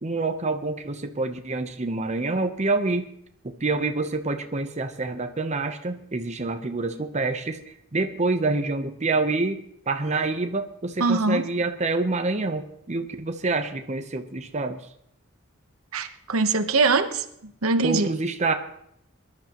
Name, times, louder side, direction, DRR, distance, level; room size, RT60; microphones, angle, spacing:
voice 1, 0.0-3.1 3.4-9.6 9.9-14.8 17.8-18.5, right 3 dB, 35° right, 0.8 m, -27 dB
voice 2, 11.0-11.4 15.9-17.2 17.6-18.1, right 3 dB, 85° right, 1.0 m, -22 dB
22.0 x 11.5 x 3.0 m
head